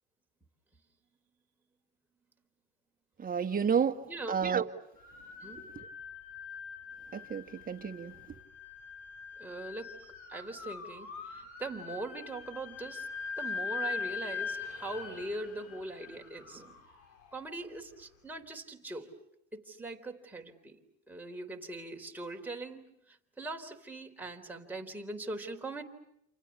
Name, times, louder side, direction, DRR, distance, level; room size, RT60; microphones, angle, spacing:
voice 1, 3.2-4.0 4.3-4.7 5.6-5.9 7.1-8.4, right 7 dB, 25° right, 1.9 m, -31 dB
sound 1, 5.0-18.0, left 5 dB, 70° left, 6.0 m, -42 dB
voice 2, 9.4-13.1 13.4-16.7 17.3-19.1 19.5-20.8 21.1-22.8 23.1-25.8, right 2 dB, 5° right, 3.9 m, -41 dB
29.0 x 28.0 x 7.1 m
supercardioid pair, 110°, 32 cm